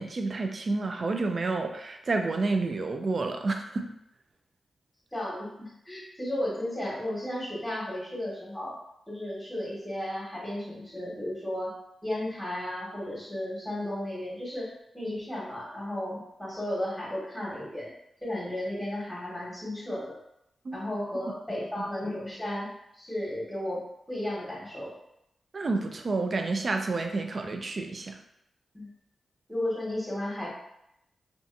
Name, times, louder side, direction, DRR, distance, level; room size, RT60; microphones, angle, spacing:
voice 1, 0.0-3.9 20.7-20.8 25.5-28.2, right 3 dB, 50° right, 5 dB, 0.3 m, -29 dB
voice 2, 5.1-8.8 9.1-11.7 12.0-14.7 14.9-17.9 18.2-20.2 20.7-22.7 22.9-24.9 28.7-28.9 29.5-30.5, left 1 dB, ahead, -5 dB, 1.2 m, -34 dB
2.7 x 2.3 x 2.5 m, 0.81 s
cardioid pair, 65°, 0 cm